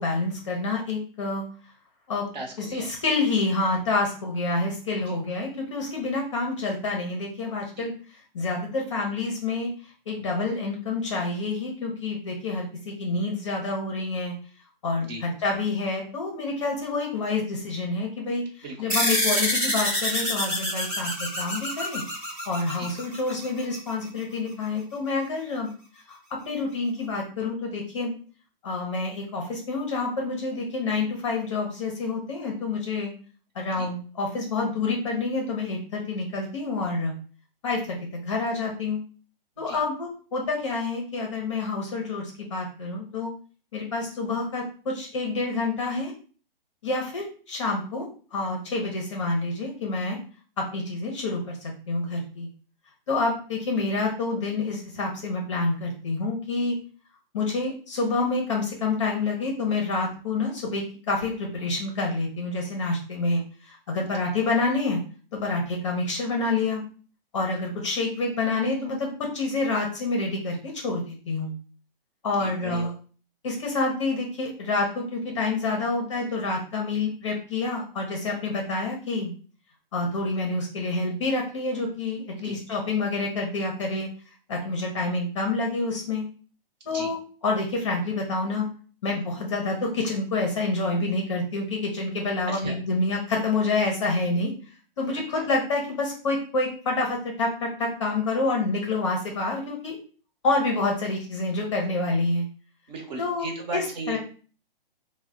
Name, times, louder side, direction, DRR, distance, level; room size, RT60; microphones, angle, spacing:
voice 1, 0.0-1.4 2.1-7.9 8.3-9.7 10.1-14.3 14.8-22.0 22.5-25.7 26.1-26.2 26.5-28.1 28.6-33.1 33.5-37.1 37.6-39.0 39.6-43.3 43.7-46.1 46.8-50.2 50.6-52.5 53.1-56.8 57.3-65.0 65.3-66.8 67.3-71.5 72.2-72.9 73.4-79.3 79.9-84.1 84.5-86.2 86.9-87.2 87.4-88.7 89.0-94.5 95.0-100.0 100.4-102.5 103.2-103.5 103.7-104.2, left 3 dB, 30° left, 1 dB, 0.6 m, -28 dB
voice 2, 2.3-2.9 5.1-5.2 7.7-7.9 15.0-15.2 18.6-18.9 22.8-22.9 33.7-33.9 39.6-39.8 72.3-72.9 82.3-82.6 86.9-87.1 92.5-92.7 95.1-95.4 102.9-104.2, right 2 dB, 45° right, 0 dB, 1.0 m, -37 dB
sound 1, 18.9-23.8, equal, 10° right, 0.6 m, -27 dB
3.1 x 2.1 x 3.5 m, 0.40 s
hypercardioid pair, 165°, 29 cm